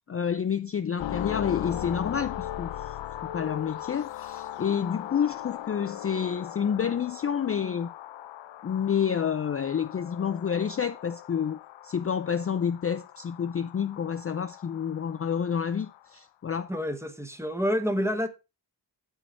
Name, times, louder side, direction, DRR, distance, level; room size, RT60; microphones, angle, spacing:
voice 1, 0.1-3.0 3.2-7.9 8.6-11.6 11.8-16.7, left 7 dB, 35° left, 0.4 m, -29 dB
sound 1, 1.0-16.1, left 13 dB, 85° left, 0.5 m, -39 dB
voice 2, 16.7-18.3, equal, 5° right, 0.9 m, -28 dB
7.8 x 6.2 x 4.3 m
wide cardioid pair, 105°, 44 cm